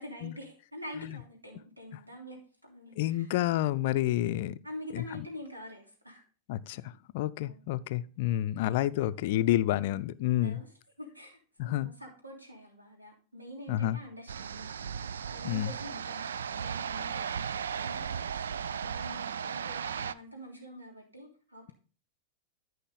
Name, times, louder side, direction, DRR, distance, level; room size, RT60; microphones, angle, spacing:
voice 1, 0.0-3.3 4.6-6.2 7.4-7.6 10.4-21.7, equal, 85° right, 3.1 m, -46 dB
voice 2, 3.0-4.6 4.9-5.0 6.5-6.8 7.1-10.6 11.6-11.9 13.7-14.0 15.4-15.7, left 14 dB, 50° left, 0.5 m, -29 dB
sound 1, 14.3-20.1, right 7 dB, 65° right, 0.4 m, -36 dB
14.0 x 5.4 x 3.8 m
figure-of-eight pair, 90°, 0 cm